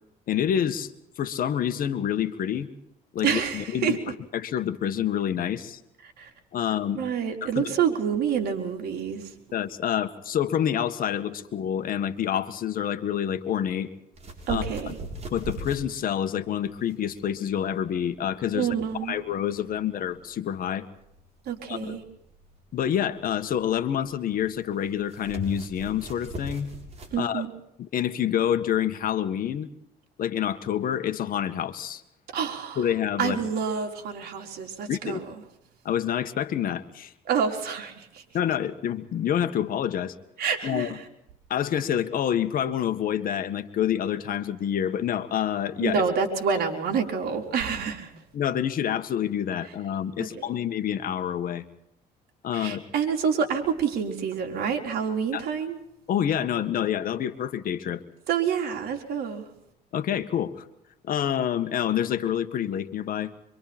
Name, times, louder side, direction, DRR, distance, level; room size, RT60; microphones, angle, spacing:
voice 1, 0.3-0.9 1.2-2.7 3.1-4.0 4.3-5.8 6.5-7.0 7.4-7.6 9.5-13.9 14.5-14.9 15.3-18.7 19.0-20.9 21.7-22.0 22.7-26.7 27.2-27.5 27.8-29.7 30.2-32.0 32.8-33.4 34.9-35.2 35.8-37.1 38.3-40.1 40.6-41.0 41.5-46.0 46.5-46.6 48.3-51.6 52.4-52.9 55.3-55.5 56.1-58.0 59.9-60.6 61.0-63.4, left 9 dB, 55° left, 8 dB, 1.9 m, -27 dB
voice 2, 3.2-4.0 6.2-6.3 7.0-9.2 14.5-15.0 18.5-19.2 21.5-22.0 27.1-27.5 32.3-32.8 33.2-35.2 37.3-38.2 40.4-41.0 45.8-48.1 50.2-50.6 52.5-55.8 58.3-59.5, right 7 dB, 70° right, 2 dB, 4.4 m, -28 dB
sound 1, 14.1-27.2, right 1 dB, 40° right, 7.3 m, -40 dB
26.5 x 25.0 x 4.5 m, 0.78 s
cardioid pair, 110°, 17 cm